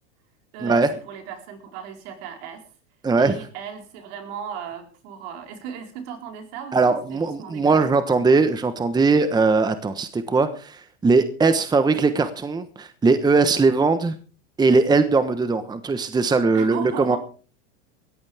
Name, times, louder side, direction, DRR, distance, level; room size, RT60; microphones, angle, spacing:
voice 1, 0.5-2.6 3.2-7.9 16.5-17.2, right 8 dB, 60° right, 4 dB, 4.5 m, -36 dB
voice 2, 3.0-3.4 6.7-14.2 14.6-17.2, right 4 dB, 10° right, 11 dB, 1.1 m, -20 dB
19.5 x 14.5 x 3.5 m, 0.39 s
supercardioid pair, 125°, 35 cm